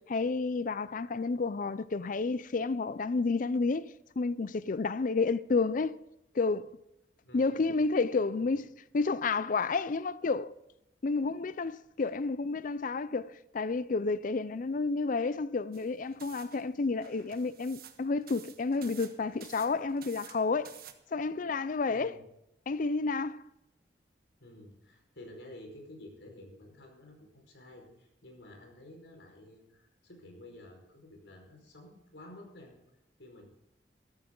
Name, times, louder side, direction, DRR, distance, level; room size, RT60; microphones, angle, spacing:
voice 1, 0.0-6.0 6.3-6.7 7.3-8.6 8.9-10.5 11.0-20.8 21.1-22.2 22.7-23.4, left 4 dB, 50° left, 0.5 m, -30 dB
voice 2, 7.2-7.7 8.2-8.5 21.9-22.3 24.4-32.7 33.2-33.4, left 1 dB, 80° left, 4.9 m, -51 dB
sound 1, 15.7-20.9, right 9 dB, 55° right, 1.4 m, -52 dB
14.0 x 13.5 x 3.9 m
head